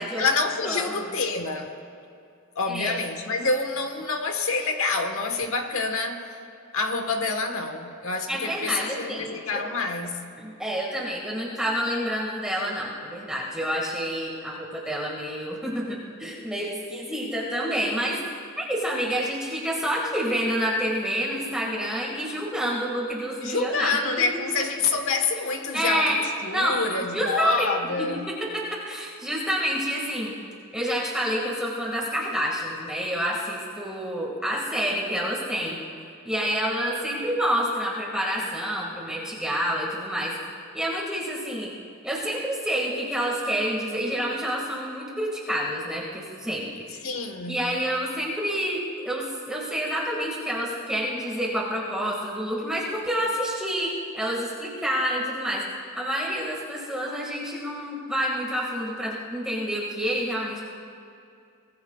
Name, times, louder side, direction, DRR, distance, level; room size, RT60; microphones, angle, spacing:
voice 1, 0.0-1.7 2.5-6.4 6.7-10.2 23.4-28.3 47.0-47.7, left 4 dB, 65° left, 5 dB, 1.4 m, -27 dB
voice 2, 0.6-0.9 2.7-3.0 8.3-9.6 10.4-18.2 18.6-24.0 25.7-26.2 26.5-26.8 27.1-27.7 28.0-30.3 30.7-35.8 36.2-40.3 40.7-41.7 42.0-46.7 47.5-55.6 55.9-60.7, equal, 5° right, -4 dB, 1.9 m, -28 dB
24.0 x 19.0 x 2.4 m, 2.5 s
head